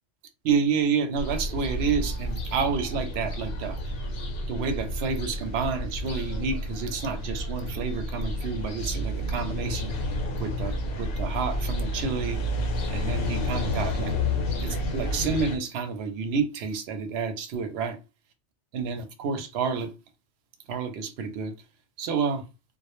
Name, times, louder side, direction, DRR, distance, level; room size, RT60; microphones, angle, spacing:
voice 1, 0.4-3.8 4.5-9.9 10.4-12.4 12.9-14.1 14.6-18.0 18.7-19.9 20.7-21.5 22.0-22.4, right 5 dB, 70° right, 0.8 m, -29 dB
sound 1, 1.2-15.6, left 1 dB, 60° left, 0.8 m, -30 dB
2.2 x 2.0 x 2.9 m
omnidirectional pair, 1.2 m